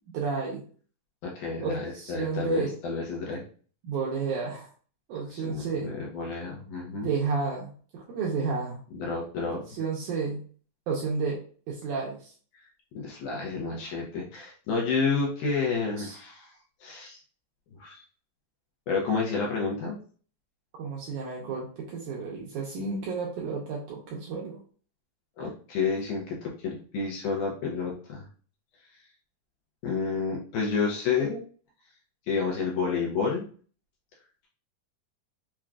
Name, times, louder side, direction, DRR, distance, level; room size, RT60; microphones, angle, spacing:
voice 1, 0.1-0.6 1.6-2.8 3.8-4.7 5.1-5.9 7.0-8.8 9.4-10.4 10.9-12.3 16.0-16.2 20.8-24.6, right 5 dB, 80° right, -3 dB, 1.9 m, -31 dB
voice 2, 1.2-3.4 5.3-7.1 8.9-9.6 12.9-16.5 16.8-17.2 17.8-18.0 18.9-20.0 25.4-28.3 29.8-31.4 32.3-33.4, left 5 dB, 75° left, -2 dB, 1.9 m, -30 dB
5.9 x 2.2 x 2.4 m, 0.43 s
omnidirectional pair, 4.2 m